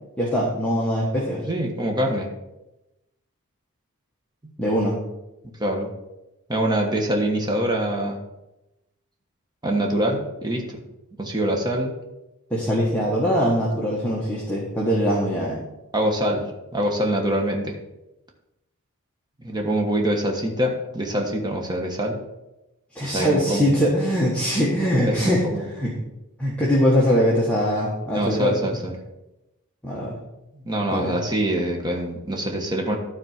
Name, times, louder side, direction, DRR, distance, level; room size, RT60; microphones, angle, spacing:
voice 1, 0.2-1.4 4.6-4.9 12.5-15.6 22.9-25.4 25.7-25.9 26.4-28.8 29.8-30.2 30.9-31.1, equal, 5° left, -6 dB, 1.5 m, -22 dB
voice 2, 1.4-2.3 5.6-5.9 6.5-8.2 9.6-10.8 11.2-11.9 15.9-17.8 19.4-22.2 23.0-23.7 25.0-25.6 28.1-29.0 30.5-33.0, right 1 dB, 20° right, 1 dB, 1.3 m, -24 dB
12.5 x 4.3 x 5.9 m, 0.95 s
head